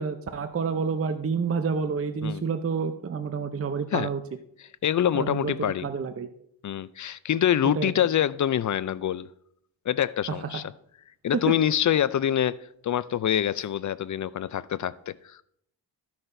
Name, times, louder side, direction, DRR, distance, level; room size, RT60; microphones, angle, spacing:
voice 1, 0.0-4.2 5.1-5.5 5.8-6.3 7.8-7.9 11.3-11.5, right 5 dB, 30° right, 9 dB, 0.6 m, -28 dB
voice 2, 4.6-5.9 6.6-9.3 9.9-10.7 11.2-15.4, left 10 dB, 40° left, 18 dB, 0.4 m, -26 dB
14.5 x 5.9 x 2.6 m, 0.69 s
cardioid pair, 65°, 46 cm